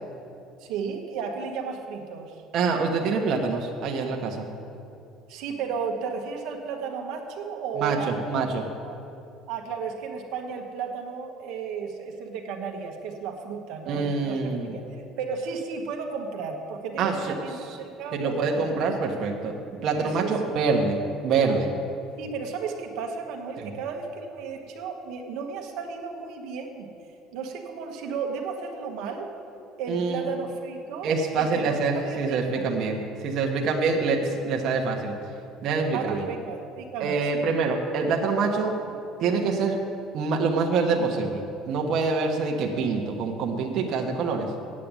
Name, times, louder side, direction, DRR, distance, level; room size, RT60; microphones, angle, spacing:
voice 1, 0.6-2.3 5.3-8.5 8.8-9.0 9.5-14.8 15.2-18.8 20.0-20.3 22.2-26.9 27.3-29.3 29.8-32.7 35.9-37.5, right 5 dB, 75° right, 2 dB, 1.2 m, -34 dB
voice 2, 2.5-4.5 7.8-8.6 13.9-14.7 17.0-17.3 17.6-17.8 18.1-19.5 19.8-21.0 21.2-21.7 23.6-23.7 29.9-30.3 31.0-35.1 35.6-36.3 37.0-38.7 39.2-39.8 40.1-41.4 41.7-44.5, right 4 dB, 55° right, 1 dB, 1.2 m, -25 dB
8.5 x 7.6 x 9.0 m, 2.7 s
cardioid pair, 130°, 0 cm